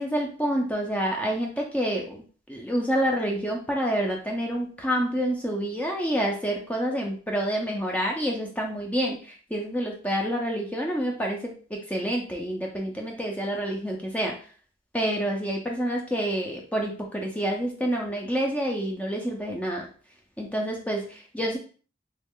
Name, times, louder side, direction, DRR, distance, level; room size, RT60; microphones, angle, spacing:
voice 1, 0.0-14.4 14.9-19.9 20.4-21.6, equal, 10° left, 0 dB, 0.5 m, -28 dB
3.0 x 2.4 x 3.6 m, 0.40 s
head